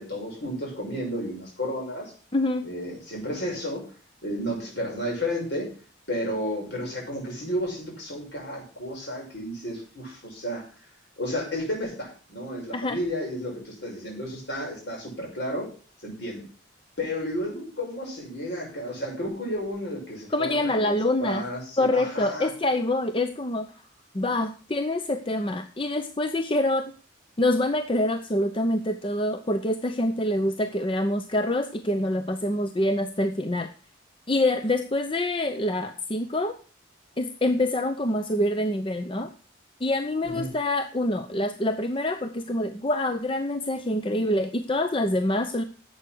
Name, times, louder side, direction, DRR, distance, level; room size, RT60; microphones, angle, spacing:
voice 1, 0.0-2.1 2.6-3.8 4.2-5.7 6.1-10.6 11.2-15.7 16.0-16.5 17.0-22.5 40.3-40.5, equal, 55° left, -1 dB, 6.4 m, -32 dB
voice 2, 2.3-2.7 12.7-13.0 20.3-21.5 21.8-23.7 24.1-26.9 27.4-33.7 34.3-36.6 37.2-39.3 39.8-45.6, left 1 dB, 25° left, 8 dB, 0.6 m, -26 dB
11.5 x 8.0 x 6.1 m, 0.40 s
head